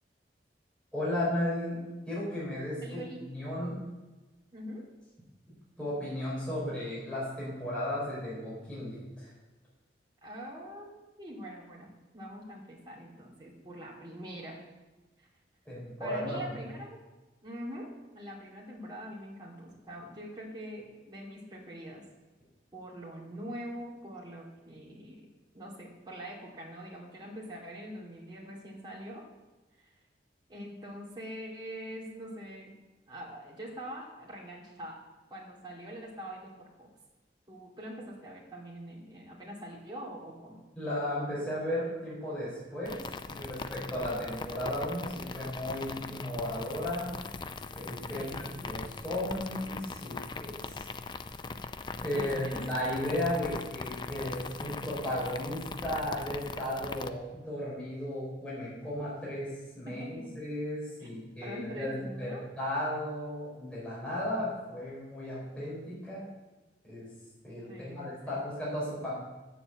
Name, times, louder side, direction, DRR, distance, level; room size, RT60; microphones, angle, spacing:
voice 1, 0.9-1.8 2.1-3.7 5.8-9.3 15.7-16.5 40.8-43.0 43.3-47.1 47.7-50.8 52.0-59.5 59.8-66.2 66.8-67.1 67.4-69.1, left 1 dB, 5° left, -9 dB, 4.4 m, -35 dB
voice 2, 2.8-3.4 4.5-4.9 10.2-14.6 15.2-15.3 16.0-17.0 17.4-22.0 22.7-25.3 25.5-29.3 29.8-29.9 30.5-32.8 33.1-35.0 35.3-36.9 37.5-40.6 44.2-44.3 48.1-48.7 52.1-52.6 59.9-60.3 61.0-61.1 61.4-62.5 67.7-68.4, equal, 25° right, -4 dB, 2.5 m, -44 dB
sound 1, 42.9-57.1, left 4 dB, 25° left, 0.4 m, -40 dB
8.6 x 7.1 x 7.9 m, 1.1 s
head